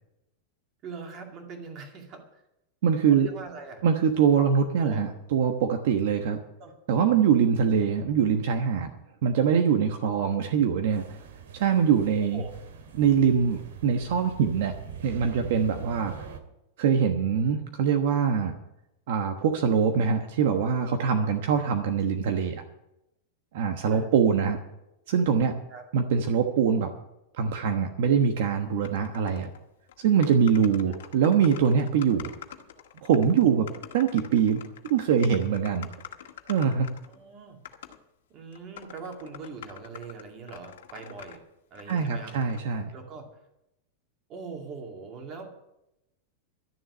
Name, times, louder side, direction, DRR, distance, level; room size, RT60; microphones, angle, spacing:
voice 1, 0.8-2.4 3.1-3.8 4.4-4.5 4.8-5.0 6.6-6.7 12.3-12.5 23.9-24.1 25.7-25.8 33.6-33.8 37.1-37.6 38.3-41.4 41.7-42.3 42.9-43.3 44.3-45.6, right 4 dB, 25° right, 3 dB, 2.3 m, -41 dB
voice 2, 2.8-3.3 3.8-6.4 6.9-8.9 9.2-11.2 11.5-12.4 12.9-14.7 15.0-16.1 16.8-18.6 19.1-22.6 23.5-24.6 25.1-25.5 25.9-26.9 27.4-29.5 30.0-32.3 33.0-33.6 33.9-35.9 36.5-36.9 41.9-42.9, right 7 dB, 55° right, 5 dB, 1.2 m, -23 dB
sound 1, 10.9-16.4, right 7 dB, 80° right, 2.1 m, -42 dB
sound 2, 28.8-29.6 29.9-30.0 30.2-37.2 37.6-38.0 38.5-41.4 41.7-42.6, left 10 dB, 80° left, 1.7 m, -46 dB
12.5 x 7.2 x 9.6 m, 0.87 s
supercardioid pair, 180°, 0 cm